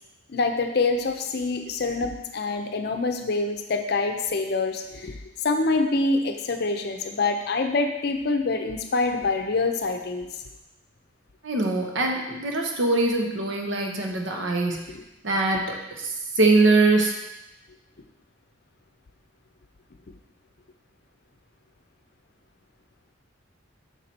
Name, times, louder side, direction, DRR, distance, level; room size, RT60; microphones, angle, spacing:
voice 1, 0.3-5.2 5.4-10.3 14.9-15.0 15.5-15.6, left 3 dB, 55° left, 6 dB, 0.6 m, -26 dB
voice 2, 11.4-14.8 15.2-16.1 16.4-17.1, right 2 dB, 75° right, 1 dB, 0.9 m, -22 dB
5.8 x 4.4 x 4.2 m, 0.94 s
head